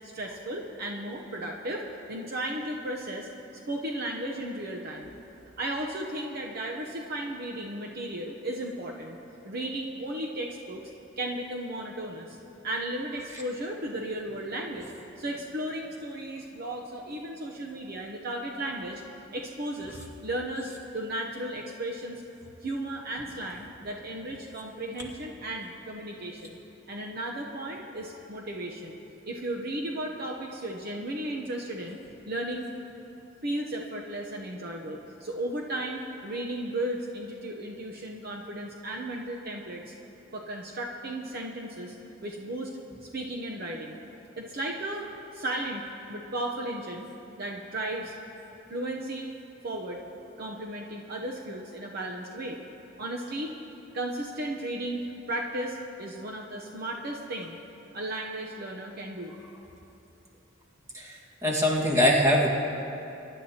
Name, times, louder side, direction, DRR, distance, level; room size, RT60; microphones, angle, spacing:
voice 1, 0.0-1.8 2.1-3.3 3.7-5.1 5.6-9.2 9.4-10.8 11.2-12.4 12.6-19.0 19.3-22.2 22.6-26.6 26.9-29.0 29.3-32.0 32.3-32.7 33.4-39.9 40.3-42.0 42.2-42.7 43.0-44.0 44.4-45.8 46.1-47.1 47.4-48.1 48.7-49.3 49.6-50.0 50.4-52.6 53.0-53.5 53.9-57.5 57.9-59.3, right 1 dB, 50° right, 0 dB, 0.8 m, -35 dB
voice 2, 61.4-62.5, equal, 15° right, -3 dB, 1.7 m, -22 dB
23.0 x 11.0 x 2.9 m, 3.0 s
head